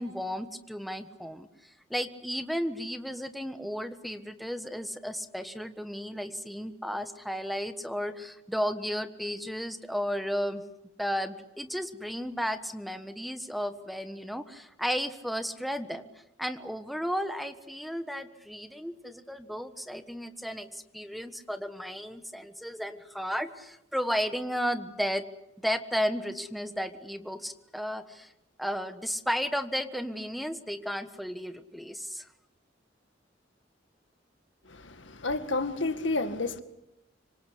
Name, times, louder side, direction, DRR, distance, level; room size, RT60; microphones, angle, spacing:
voice 1, 0.0-1.5 1.9-10.6 11.0-16.1 16.4-25.2 25.6-28.3 28.6-32.3, equal, ahead, 9 dB, 1.3 m, -33 dB
voice 2, 34.7-36.6, left 2 dB, 85° left, 9 dB, 2.0 m, -30 dB
26.0 x 25.0 x 8.4 m, 0.87 s
head